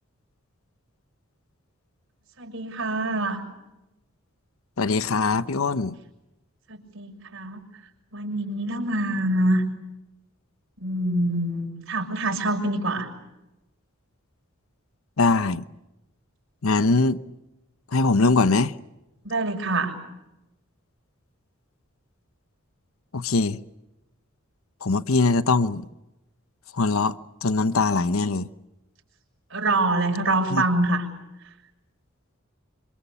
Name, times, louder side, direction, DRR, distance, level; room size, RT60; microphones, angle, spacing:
voice 1, 2.4-3.4 6.7-7.6 8.1-9.6 10.8-13.1 19.2-20.0 29.5-31.0, right 2 dB, 65° right, 6.8 m, -25 dB
voice 2, 4.8-5.9 15.2-15.6 16.6-17.2 17.9-18.7 23.1-23.6 24.8-25.8 26.8-28.5 30.5-30.6, left 3 dB, 80° left, 0.9 m, -22 dB
26.5 x 26.5 x 7.2 m
head